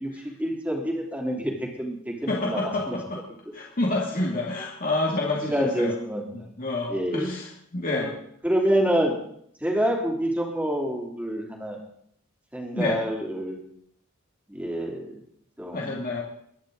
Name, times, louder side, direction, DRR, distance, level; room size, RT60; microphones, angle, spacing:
voice 1, 0.0-3.0 5.2-6.2 6.9-7.3 7.9-8.1 8.4-9.1 9.6-11.8 12.5-13.6 14.5-15.2 15.6-16.0, equal, 5° right, -1 dB, 3.2 m, -27 dB
voice 2, 2.3-3.2 3.5-5.9 6.3-7.5 7.7-8.1 12.7-13.0 15.7-16.2, left 2 dB, 45° left, -2 dB, 2.2 m, -28 dB
23.5 x 10.5 x 3.9 m, 0.67 s
head